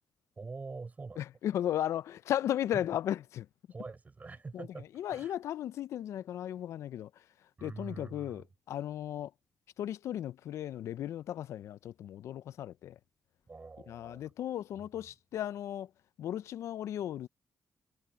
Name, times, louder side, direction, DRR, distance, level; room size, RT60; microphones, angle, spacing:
voice 1, 0.4-1.2 2.7-2.9 3.7-5.3 7.6-8.5 13.5-14.3 14.8-15.1, right 4 dB, 35° right, 4.9 m, -45 dB
voice 2, 1.2-3.5 5.0-7.1 7.6-9.3 9.8-13.0 13.9-15.9 16.2-17.3, left 11 dB, 85° left, 0.4 m, -35 dB
cardioid pair, 85°, 5 cm